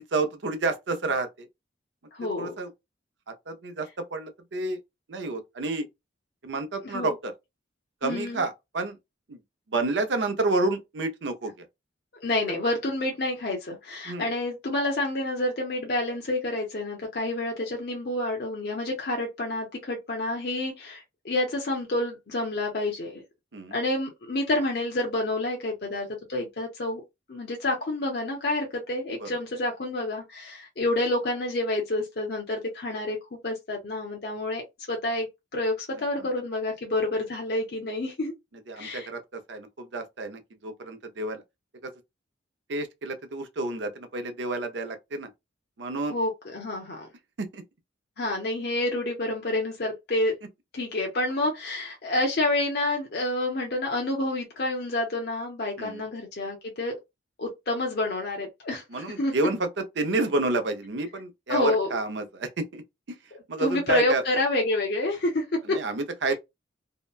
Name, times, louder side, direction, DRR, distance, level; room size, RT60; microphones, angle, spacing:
voice 1, 0.0-1.5 2.4-2.7 3.3-4.8 5.1-5.9 6.4-7.3 8.0-9.0 9.3-9.4 9.7-11.6 14.1-14.3 23.5-23.8 29.2-29.3 35.9-36.3 38.7-41.4 41.8-41.9 42.7-45.3 45.8-46.1 47.4-47.6 55.8-56.1 58.9-59.7 60.0-62.8 63.1-63.2 63.5-64.2 65.6-66.3, right 3 dB, 70° right, 0.6 m, -30 dB
voice 2, 2.1-2.5 6.8-7.1 8.0-8.4 12.2-23.2 23.7-27.0 27.3-33.2 33.4-35.3 35.5-38.3 38.7-39.1 46.1-47.1 48.2-50.4 50.7-56.9 57.4-59.3 61.5-61.9 63.3-65.8, left 2 dB, 55° left, 0.7 m, -28 dB
2.8 x 2.1 x 2.3 m
head